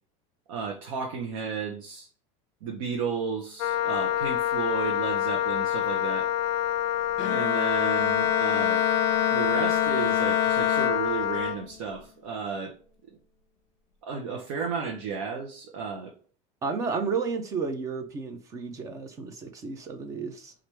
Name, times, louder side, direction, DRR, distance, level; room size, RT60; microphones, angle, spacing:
voice 1, 0.5-2.1 2.6-6.3 7.3-8.8 9.3-12.7 14.0-16.1, right 5 dB, 70° right, 0.8 m, -33 dB
Wind instrument woodwind instrument, 3.6-11.6, left 11 dB, 75° left, 0.4 m, -27 dB
Bowed string instrument, 7.2-11.6, left 9 dB, 35° left, 0.8 m, -27 dB
voice 2, 16.6-20.5, right 5 dB, 20° right, 0.4 m, -32 dB
4.5 x 2.5 x 3.2 m
cardioid pair, 175°, 17 cm